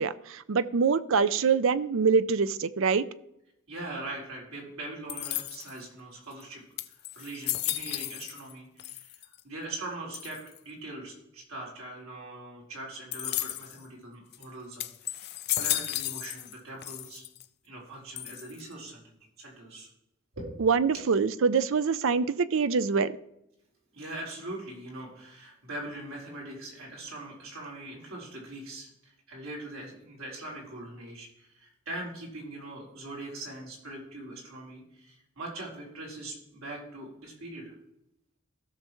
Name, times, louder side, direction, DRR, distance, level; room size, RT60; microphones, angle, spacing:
voice 1, 0.0-3.1 20.6-23.2, right 5 dB, 65° right, 15 dB, 0.5 m, -25 dB
voice 2, 3.7-6.6 7.2-9.2 9.4-10.4 10.6-15.3 15.6-17.2 17.6-19.9 20.3-20.5 23.9-28.9 29.3-37.6, right 2 dB, 85° right, -3 dB, 3.9 m, -41 dB
sound 1, 5.1-5.8 6.4-6.5 6.8-8.5 8.8-9.4 10.1-10.6 13.1-13.8 14.3-14.4 14.8-16.6 16.8-17.4 18.2-18.7, left 14 dB, 50° left, 0.5 m, -34 dB
16.0 x 6.7 x 3.1 m, 0.81 s
head